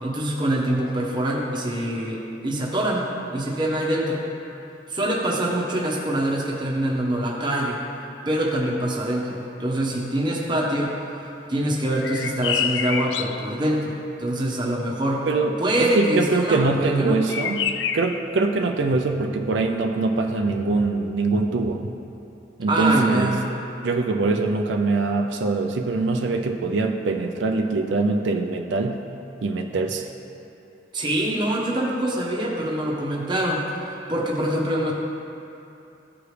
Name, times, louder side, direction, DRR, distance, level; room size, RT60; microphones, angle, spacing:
voice 1, 0.0-4.2 4.9-7.8 8.3-10.9 11.5-15.3 15.6-17.2 22.7-23.4 30.9-33.6 34.1-34.9, right 1 dB, 25° right, -3 dB, 1.0 m, -24 dB
sound 1, 12.0-13.5 17.3-18.2, left 7 dB, 75° left, 0.4 m, -27 dB
voice 2, 15.3-17.6 17.9-21.8 22.6-23.3 23.8-29.0 29.4-30.1, right 3 dB, 85° right, 3 dB, 0.5 m, -23 dB
14.5 x 4.8 x 3.3 m, 2.8 s
head